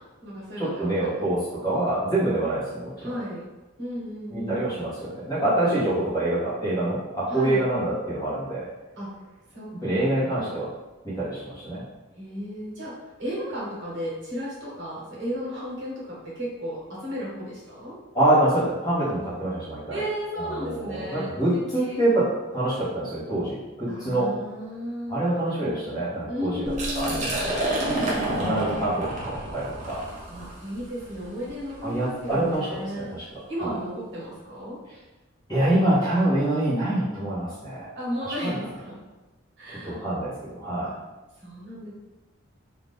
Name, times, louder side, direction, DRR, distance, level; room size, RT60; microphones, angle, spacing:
voice 1, 0.0-1.2 3.0-3.4 3.8-4.6 7.3-7.6 9.0-9.1 9.5-10.5 12.1-18.0 19.9-22.0 23.9-25.2 26.3-27.4 28.3-28.6 30.3-33.1 33.5-34.8 37.9-39.0 39.6-40.0 40.8-40.9 41.4-41.9, equal, 55° right, -6 dB, 1.1 m, -34 dB
voice 2, 0.6-2.9 4.3-8.7 9.8-10.7 11.0-11.8 18.1-20.0 20.4-22.2 22.5-24.3 25.1-26.5 26.9-30.0 31.8-32.7 33.0-33.7 35.5-37.9 38.4-38.5 39.8-40.9, right 1 dB, 20° left, -10 dB, 1.1 m, -26 dB
Liquid, 26.7-32.4, right 1 dB, 35° right, 0.6 m, -30 dB
2.6 x 2.5 x 3.4 m, 1.1 s
head